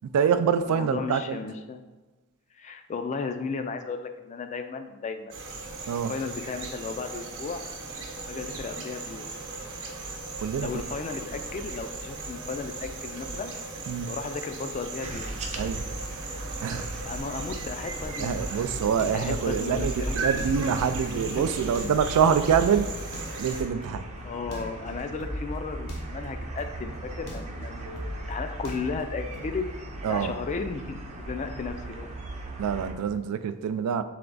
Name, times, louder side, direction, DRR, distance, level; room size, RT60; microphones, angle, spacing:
voice 1, 0.0-1.4 5.9-6.1 10.4-10.7 13.9-14.1 15.6-15.8 16.6-16.9 18.2-22.9 23.4-24.0 30.0-30.3 32.6-34.0, right 7 dB, 85° right, 12 dB, 0.3 m, -25 dB
voice 2, 0.7-1.8 2.5-5.3 6.1-7.6 8.2-9.3 10.5-13.6 14.0-15.3 17.0-20.2 20.8-21.4 21.8-22.4 24.2-28.0 28.3-29.7 30.1-32.1, left 4 dB, 30° left, 8 dB, 0.3 m, -35 dB
sound 1, 5.3-23.6, right 3 dB, 60° right, 0.8 m, -37 dB
sound 2, 15.0-32.9, right 1 dB, 30° right, 0.5 m, -38 dB
sound 3, 18.0-29.7, left 1 dB, 80° left, 0.7 m, -41 dB
3.4 x 3.3 x 3.8 m, 1.2 s
head